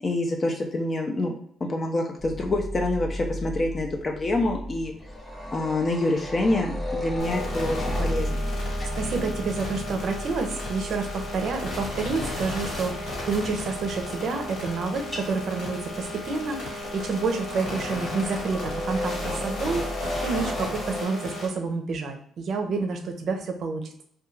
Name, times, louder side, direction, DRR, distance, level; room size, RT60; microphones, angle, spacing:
voice 1, 0.0-1.3 1.6-4.9 5.5-8.4, left 2 dB, 35° left, 2 dB, 0.4 m, -26 dB
sound 1, 2.2-21.0, equal, 10° left, 0.8 m, -34 dB
sound 2, 7.2-21.5, left 2 dB, 70° left, 1.4 m, -35 dB
voice 2, 9.0-24.0, right 4 dB, 65° right, 4 dB, 0.5 m, -29 dB
2.3 x 2.2 x 3.0 m, 0.65 s
cardioid pair, 90°, 0 cm